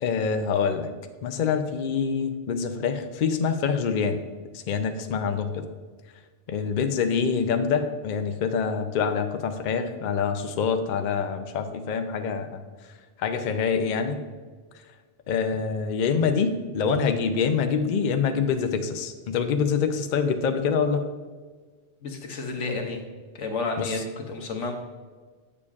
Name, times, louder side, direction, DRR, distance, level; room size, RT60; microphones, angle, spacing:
voice 1, 0.0-0.9 1.2-4.2 4.5-5.6 6.5-12.6 13.2-14.2 15.3-21.0 23.8-23.9, left 6 dB, 55° left, 7 dB, 0.5 m, -25 dB
voice 2, 22.0-23.0 23.3-24.0 24.3-24.7, left 3 dB, 90° left, 3 dB, 1.2 m, -30 dB
8.3 x 6.9 x 2.4 m, 1.4 s
omnidirectional pair, 1.2 m